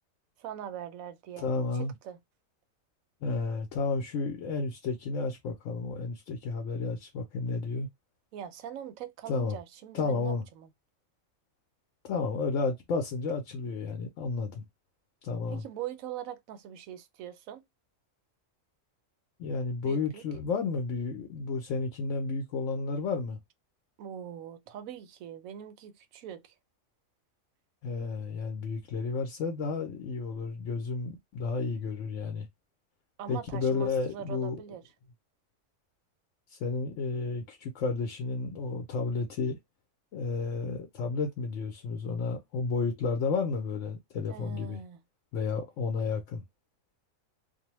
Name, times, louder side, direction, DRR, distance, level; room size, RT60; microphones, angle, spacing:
voice 1, 0.4-1.5 1.7-2.2 8.3-10.7 15.5-17.6 19.8-20.2 24.0-26.5 33.2-34.8 44.3-45.0, right 9 dB, 85° right, 1.0 m, -42 dB
voice 2, 1.4-1.9 3.2-7.9 9.3-9.6 9.9-10.4 12.0-14.6 15.2-15.6 19.4-23.4 27.8-32.5 33.3-34.6 36.5-39.6 40.1-44.8 45.3-46.4, left 4 dB, 70° left, 0.9 m, -32 dB
2.6 x 2.1 x 2.9 m
omnidirectional pair, 1.4 m